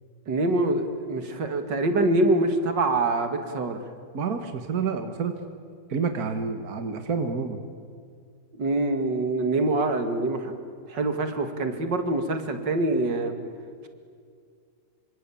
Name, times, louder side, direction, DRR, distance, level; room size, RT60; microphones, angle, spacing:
voice 1, 0.3-3.8 8.6-10.6 10.9-13.3, right 2 dB, 75° right, 7 dB, 2.8 m, -25 dB
voice 2, 4.1-5.3 5.9-7.6, right 5 dB, 55° right, 7 dB, 2.0 m, -28 dB
26.5 x 25.5 x 8.6 m, 2.2 s
omnidirectional pair, 1.9 m